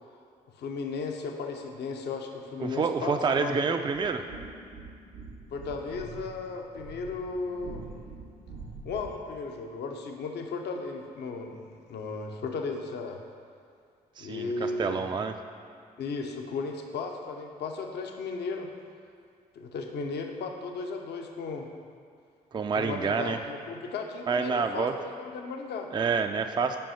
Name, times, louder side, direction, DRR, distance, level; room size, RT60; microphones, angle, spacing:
voice 1, 0.6-3.7 5.5-7.9 8.8-13.2 14.2-15.1 16.0-18.7 19.6-21.7 22.7-25.9, left 4 dB, 65° left, 3 dB, 0.7 m, -35 dB
voice 2, 2.6-4.2 14.2-15.4 22.5-23.4 24.3-24.9 25.9-26.8, right 5 dB, 25° right, 7 dB, 0.4 m, -28 dB
sound 1, 4.0-9.3, right 3 dB, 85° right, 1.8 m, -45 dB
5.4 x 4.7 x 5.7 m, 2.2 s
hypercardioid pair, 40°, 19 cm